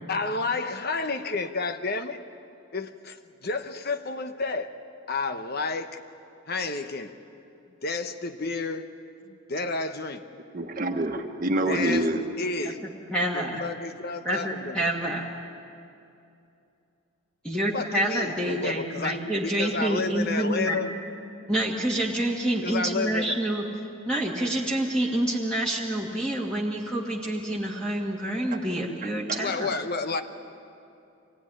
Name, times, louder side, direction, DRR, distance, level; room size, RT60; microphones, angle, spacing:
voice 1, 0.1-2.2 2.7-4.7 5.1-5.9 6.5-7.1 7.8-8.9 9.3-10.2 11.7-12.1 12.4-12.8 13.3-14.9 17.7-20.9 22.6-23.3 29.4-30.2, left 3 dB, 45° left, 8 dB, 1.0 m, -30 dB
voice 2, 10.5-12.3 29.0-29.4, right 1 dB, 40° right, 4 dB, 1.4 m, -27 dB
voice 3, 12.8-13.6 14.2-15.3 17.4-20.8 21.5-23.6 24.1-29.8, right 1 dB, 5° left, -3 dB, 1.9 m, -27 dB
25.0 x 19.0 x 10.0 m, 2.7 s
head